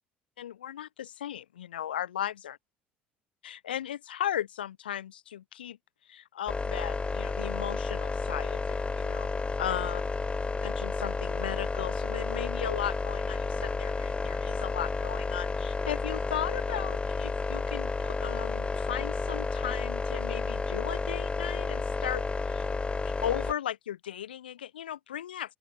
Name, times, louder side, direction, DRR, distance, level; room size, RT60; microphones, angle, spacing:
voice 1, 0.4-2.6 3.4-5.8 6.1-9.3 9.6-10.0 10.6-22.7 23.2-25.6, left 11 dB, 80° left, 1.7 m, -36 dB
sound 1, 6.5-23.5, left 4 dB, 20° left, 1.8 m, -31 dB
open air
hypercardioid pair, 65°, 5 cm